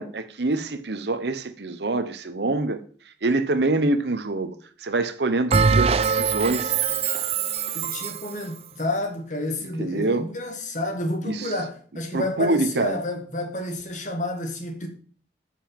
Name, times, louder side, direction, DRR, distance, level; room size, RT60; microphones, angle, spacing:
voice 1, 0.0-2.8 3.2-4.5 4.8-6.8 9.8-10.3 11.2-11.5 12.1-13.0, right 2 dB, 70° right, 0.9 m, -25 dB
Bell, 5.5-8.3, right 5 dB, 35° right, 0.5 m, -22 dB
voice 2, 7.7-14.9, left 2 dB, 45° left, 2.0 m, -30 dB
9.2 x 5.6 x 7.2 m
head